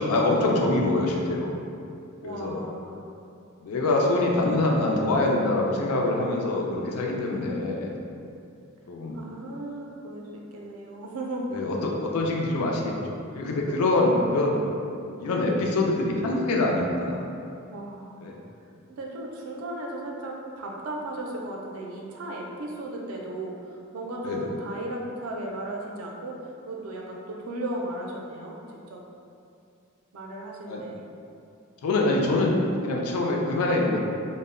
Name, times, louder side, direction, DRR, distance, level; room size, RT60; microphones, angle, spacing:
voice 1, 0.0-1.5 2.2-2.6 3.6-7.9 8.9-9.2 11.5-14.6 15.2-17.2 18.2-18.3 24.2-24.4 30.7-30.8 31.8-34.0, left 2 dB, 85° left, -1 dB, 0.4 m, -24 dB
voice 2, 2.2-3.0 7.3-7.8 9.1-11.5 14.1-14.7 17.7-18.2 18.9-26.3 26.6-29.0 30.1-31.0, right 1 dB, 75° right, -1 dB, 0.4 m, -36 dB
2.1 x 2.0 x 3.5 m, 2.5 s
head